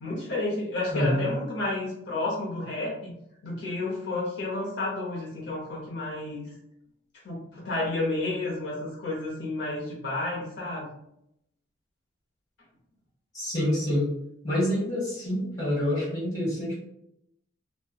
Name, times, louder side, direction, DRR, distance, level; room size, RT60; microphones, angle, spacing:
voice 1, 0.0-3.1 3.4-6.5 7.2-10.9, left 2 dB, 65° left, -5 dB, 0.7 m, -31 dB
voice 2, 0.9-1.2 13.3-14.1 14.4-16.8, equal, 20° left, -7 dB, 1.2 m, -27 dB
2.6 x 2.1 x 2.2 m, 0.78 s
head